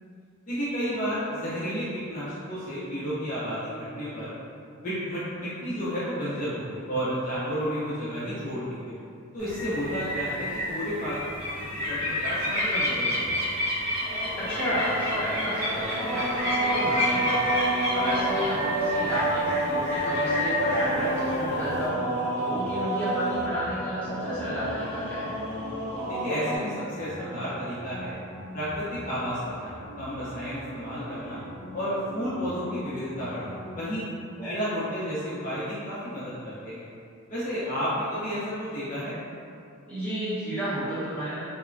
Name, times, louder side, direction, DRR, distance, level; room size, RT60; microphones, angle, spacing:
voice 1, 0.5-4.3 4.7-8.9 9.3-11.3 11.7-13.1 13.3-13.4 26.1-28.2 28.5-31.4 31.7-34.0 34.4-36.9 37.3-39.2, equal, 40° left, -11 dB, 0.5 m, -32 dB
sound 1, 9.4-21.9, left 1 dB, 45° right, 0.9 m, -30 dB
sound 2, 14.0-26.6, right 1 dB, 15° right, 1.4 m, -29 dB
voice 2, 14.4-16.3 16.6-17.6 17.9-22.0 22.4-25.4 34.4-34.6 39.9-41.4, equal, 5° left, -13 dB, 0.9 m, -32 dB
sound 3, 17.6-33.9, equal, 85° left, 0.6 m, -43 dB
3.0 x 2.1 x 2.4 m, 2.4 s
head